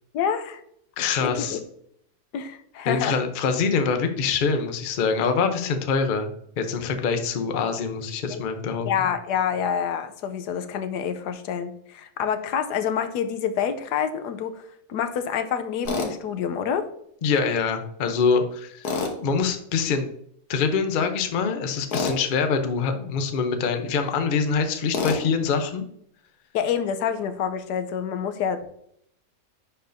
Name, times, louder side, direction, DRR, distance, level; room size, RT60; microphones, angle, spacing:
voice 1, 0.1-0.6 1.2-1.6 2.3-3.2 8.3-8.4 8.9-16.9 26.5-28.7, left 8 dB, 85° left, 9 dB, 1.2 m, -27 dB
voice 2, 1.0-1.6 2.9-9.1 17.2-18.9 19.2-20.1 20.5-25.8, left 5 dB, 50° left, 7 dB, 0.6 m, -24 dB
Tools, 15.9-16.1 18.8-19.2 21.9-22.2 24.9-25.2, left 4 dB, 70° left, 1.6 m, -26 dB
10.0 x 4.5 x 2.6 m, 0.71 s
omnidirectional pair, 1.7 m